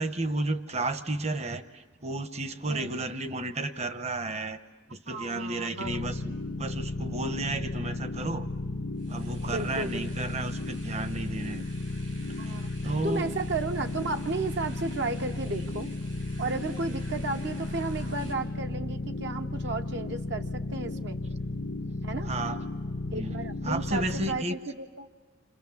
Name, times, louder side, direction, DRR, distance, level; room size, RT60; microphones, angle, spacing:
voice 1, 0.0-4.6 4.9-8.5 9.1-11.7 12.4-12.6 12.8-13.3 21.9-22.0 22.2-22.6 23.1-24.6, right 2 dB, 35° right, 10 dB, 1.0 m, -33 dB
voice 2, 2.7-3.0 5.1-6.3 9.5-10.4 12.4-15.9 16.4-21.2 22.0-22.3 23.1-25.1, right 3 dB, 65° right, 6 dB, 1.0 m, -34 dB
sound 1, 5.8-24.4, left 2 dB, 70° left, 1.0 m, -34 dB
sound 2, 8.9-18.3, right 1 dB, 90° right, 6.5 m, -49 dB
29.5 x 26.5 x 7.2 m, 1.3 s
head